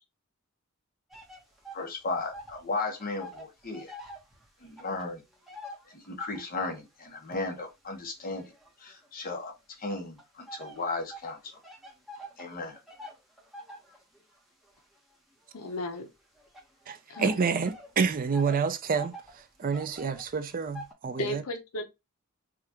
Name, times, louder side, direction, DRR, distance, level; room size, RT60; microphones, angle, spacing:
sound 1, 1.1-2.7 2.9-6.6 7.2-9.3 9.9-20.9, equal, ahead, 1.0 m, -47 dB
voice 1, 1.7-3.9 4.6-5.2 5.9-8.5 8.8-9.5 9.8-11.4 12.4-12.8, left 3 dB, 40° left, 1.1 m, -35 dB
voice 2, 15.5-16.1 17.1-17.4 21.2-21.9, left 2 dB, 75° left, 0.8 m, -34 dB
voice 3, 16.9-21.4, right 5 dB, 40° right, 0.4 m, -29 dB
4.8 x 2.5 x 2.8 m
head